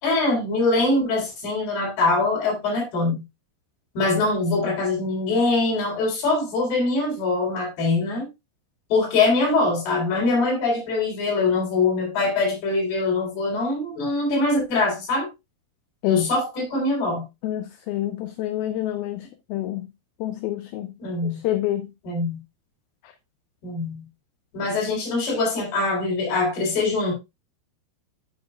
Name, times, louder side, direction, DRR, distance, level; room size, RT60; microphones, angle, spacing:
voice 1, 0.0-3.2 3.9-8.3 8.9-15.3 16.0-17.3 21.0-21.4 22.0-22.4 23.6-24.0 24.5-27.1, left 3 dB, 65° left, 6.2 m, -23 dB
voice 2, 17.4-19.9 20.2-20.9 21.3-21.9, left 13 dB, 80° left, 2.2 m, -27 dB
12.5 x 6.8 x 2.4 m
omnidirectional pair, 5.0 m